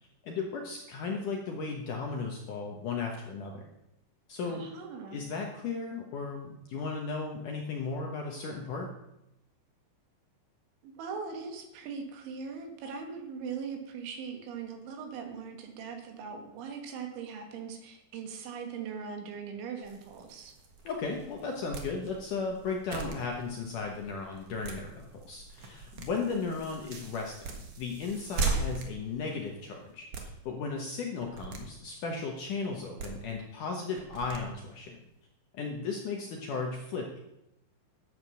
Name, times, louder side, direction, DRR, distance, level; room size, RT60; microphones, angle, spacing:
voice 1, 0.2-3.6 4.3-4.7 5.1-8.9 20.8-27.5 27.8-35.0 35.5-37.2, left 4 dB, 70° left, 1 dB, 2.0 m, -35 dB
voice 2, 4.4-5.3 10.8-20.5, right 6 dB, 85° right, 4 dB, 4.1 m, -40 dB
sound 1, 19.8-29.9, right 4 dB, 50° right, 1.9 m, -39 dB
sound 2, 21.6-21.9 22.5-22.6 22.9-23.2 24.4-24.8 25.5-26.1 27.1-27.2 27.4-27.6 28.4-28.9 29.9-30.3 31.1-31.6 32.7-33.1 33.9-34.4, right 5 dB, 70° right, 1.4 m, -42 dB
12.5 x 8.1 x 6.3 m, 0.87 s
omnidirectional pair, 5.2 m